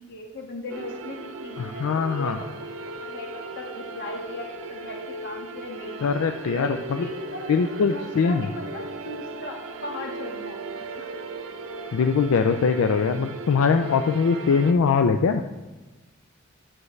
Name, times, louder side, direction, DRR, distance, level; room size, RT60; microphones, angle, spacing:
voice 1, 0.0-6.0 6.6-7.4 7.9-11.1, left 2 dB, 55° left, 1 dB, 1.5 m, -38 dB
sound 1, 0.7-14.7, right 2 dB, 70° right, 0.7 m, -37 dB
voice 2, 1.6-2.4 6.0-7.1 7.5-8.5 11.9-15.4, left 5 dB, 80° left, 7 dB, 0.4 m, -22 dB
9.4 x 7.4 x 3.2 m, 1.2 s
head